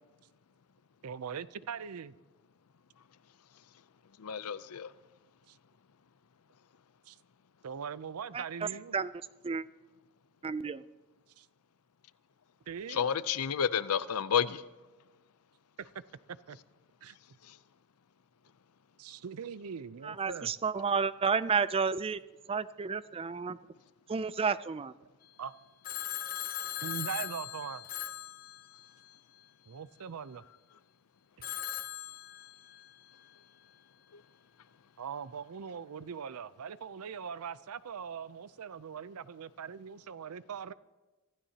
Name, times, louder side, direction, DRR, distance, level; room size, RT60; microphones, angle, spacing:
voice 1, 1.0-2.1 5.5-5.6 7.1-7.2 7.6-9.0 11.4-11.5 12.7-13.1 15.8-15.9 16.5-16.6 17.0-17.2 19.0-20.5 25.4-25.5 26.8-27.8 29.7-30.4 35.0-40.7, right 7 dB, 90° right, 0.5 m, -41 dB
voice 2, 4.2-4.9 12.9-14.6 17.5-17.6 34.1-34.2, left 7 dB, 85° left, 0.5 m, -30 dB
voice 3, 10.4-10.8 20.0-22.2 22.5-23.6 24.1-24.9, right 5 dB, 25° right, 0.4 m, -31 dB
Telephone, 25.8-29.1 31.4-32.9, left 11 dB, 40° left, 0.7 m, -39 dB
25.0 x 15.5 x 2.8 m
head